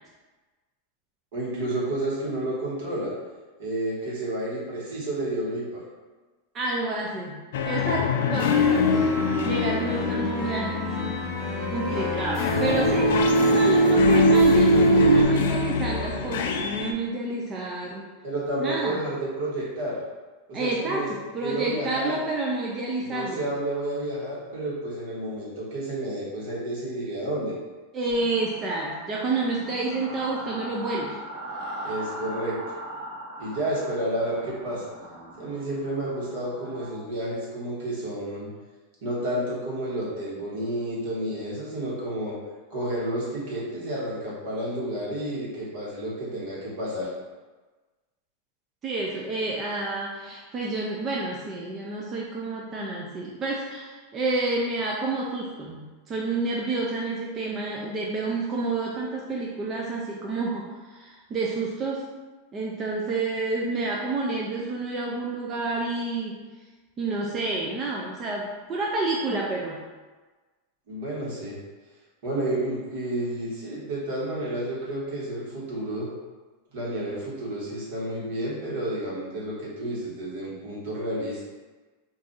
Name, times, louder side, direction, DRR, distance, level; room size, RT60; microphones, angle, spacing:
voice 1, 1.3-3.1 3.6-5.8 18.2-20.0 20.5-21.1 21.4-22.2 23.0-27.5 31.8-32.6 33.4-34.8 35.4-38.5 39.0-42.3 42.7-47.1 70.9-71.6 72.2-76.1 76.7-81.4, right 1 dB, 65° right, -6 dB, 1.3 m, -30 dB
voice 2, 6.5-9.0 9.4-10.8 11.7-18.1 18.6-19.0 20.5-21.0 21.3-23.4 27.9-31.2 48.8-62.1 62.5-66.4 67.0-69.8, right 3 dB, 20° right, -3 dB, 0.3 m, -29 dB
sound 1, 7.5-11.6 12.1-16.9, left 7 dB, 75° left, 0.3 m, -25 dB
sound 2, 8.4-15.2, right 2 dB, 25° left, 0.8 m, -23 dB
vocal fry example female, 28.1-37.0, right 1 dB, 50° right, 1.0 m, -40 dB
2.6 x 2.4 x 3.9 m, 1.3 s
supercardioid pair, 160°, 0 cm